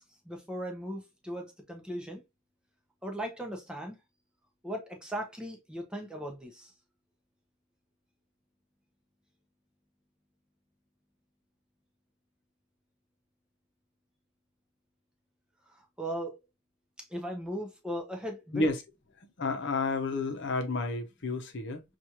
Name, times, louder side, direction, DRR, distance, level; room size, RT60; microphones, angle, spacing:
voice 1, 0.0-2.2 3.0-4.0 4.6-6.7 15.7-16.4 17.0-18.7, equal, 5° right, 0.7 m, -38 dB
voice 2, 19.4-21.8, left 3 dB, 55° left, 0.8 m, -30 dB
6.0 x 2.5 x 2.9 m
head